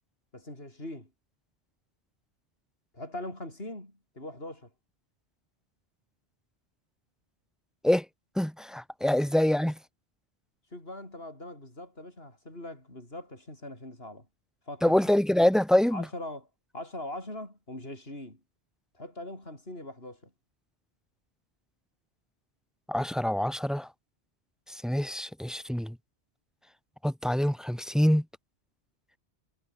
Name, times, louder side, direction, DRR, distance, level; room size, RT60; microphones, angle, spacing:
voice 1, 0.3-1.1 2.9-4.7 10.7-14.3 14.7-15.0 15.9-16.5 16.7-18.4 19.0-20.2, left 1 dB, 60° left, 7.8 m, -41 dB
voice 2, 8.4-9.8 14.8-16.0 22.9-23.9 24.7-26.0 27.0-28.2, left 1 dB, ahead, 1.1 m, -25 dB
omnidirectional pair, 1.1 m